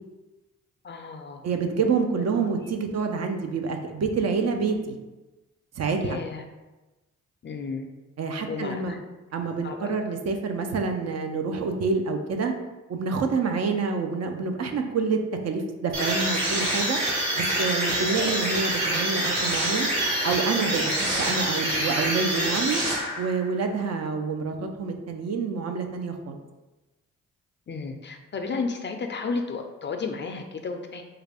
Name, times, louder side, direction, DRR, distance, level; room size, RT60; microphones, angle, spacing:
voice 1, 0.8-1.4 6.0-6.4 7.4-7.9 8.5-9.0 9.6-9.9 27.7-31.0, left 4 dB, 35° left, 5 dB, 0.4 m, -32 dB
voice 2, 1.4-5.0 5.8-6.2 8.2-9.0 9.3-12.5 12.9-17.0 17.4-19.9 20.2-22.8 23.2-26.4, right 4 dB, 55° right, 5 dB, 0.5 m, -27 dB
sound 1, 15.9-23.4, right 1 dB, 85° right, 1.2 m, -26 dB
3.3 x 2.4 x 3.4 m, 1.1 s
supercardioid pair, 60°, 32 cm